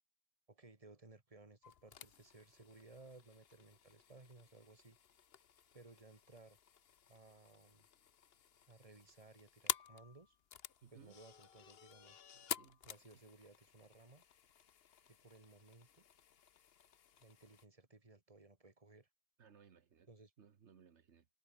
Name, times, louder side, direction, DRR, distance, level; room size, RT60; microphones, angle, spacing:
voice 1, 0.5-5.0 5.7-6.6 7.1-7.9 8.6-10.4 10.9-12.3 12.8-14.2 15.1-16.0 17.1-19.1 20.1-20.3, right 3 dB, 30° right, 2.3 m, -60 dB
sound 1, 1.6-17.7, left 8 dB, 60° left, 1.1 m, -50 dB
voice 2, 10.8-11.2 12.3-12.8 19.4-20.1 20.4-21.3, right 7 dB, 80° right, 1.5 m, -63 dB
omnidirectional pair, 1.2 m